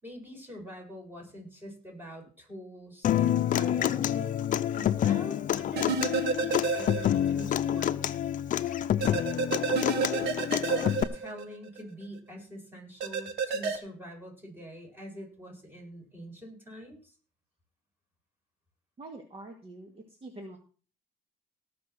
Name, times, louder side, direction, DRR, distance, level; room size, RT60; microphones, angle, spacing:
voice 1, 0.0-4.3 4.7-8.1 9.7-17.2, equal, 10° right, 0 dB, 7.7 m, -44 dB
Human voice / Acoustic guitar, 3.0-11.0, left 11 dB, 50° left, 0.7 m, -28 dB
sound 1, 5.8-7.4 7.8-7.9 9.0-11.8 13.0-13.8, right 5 dB, 75° right, 1.8 m, -30 dB
voice 2, 19.0-20.6, right 2 dB, 35° right, 4 dB, 2.2 m, -45 dB
18.0 x 6.2 x 6.2 m, 0.38 s
cardioid pair, 110°, 17 cm